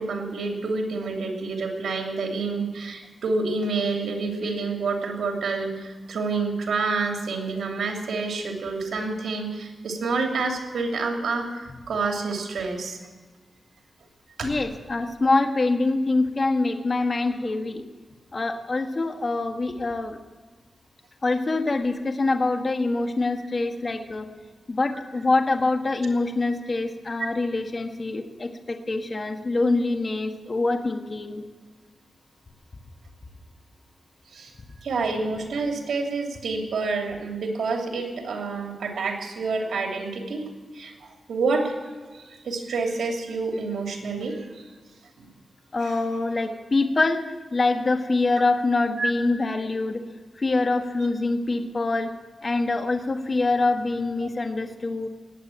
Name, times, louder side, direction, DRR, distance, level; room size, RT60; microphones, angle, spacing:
voice 1, 0.0-13.0 14.4-14.5 34.3-34.5 34.8-40.4 40.7-41.7 42.1-44.6 45.2-45.3 45.8-46.0 49.0-49.1, right 3 dB, 90° right, 2 dB, 2.9 m, -28 dB
voice 2, 14.4-17.8 18.3-20.2 21.2-24.3 24.7-31.4 45.7-47.2 47.5-50.0 50.3-52.1 52.4-55.1, left 3 dB, 40° left, 5 dB, 1.5 m, -25 dB
19.0 x 8.7 x 8.7 m, 1.3 s
wide cardioid pair, 105°, 0 cm